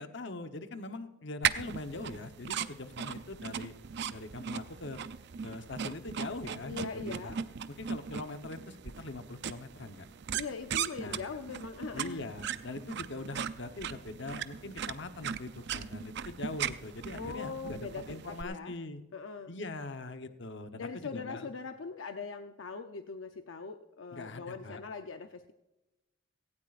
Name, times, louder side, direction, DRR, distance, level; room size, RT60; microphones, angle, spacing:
voice 1, 0.0-3.7 4.1-5.0 5.4-7.4 7.8-10.0 11.0-11.2 11.9-19.0 19.5-21.5 24.1-24.8, left 2 dB, 65° left, 8 dB, 1.0 m, -42 dB
sound 1, 1.4-18.4, right 8 dB, 60° right, 0.5 m, -38 dB
voice 2, 6.6-7.4 10.3-12.2 17.1-18.7 19.1-19.5 20.7-25.5, left 4 dB, 80° left, 7 dB, 0.7 m, -41 dB
17.5 x 16.5 x 2.5 m, 1.0 s
head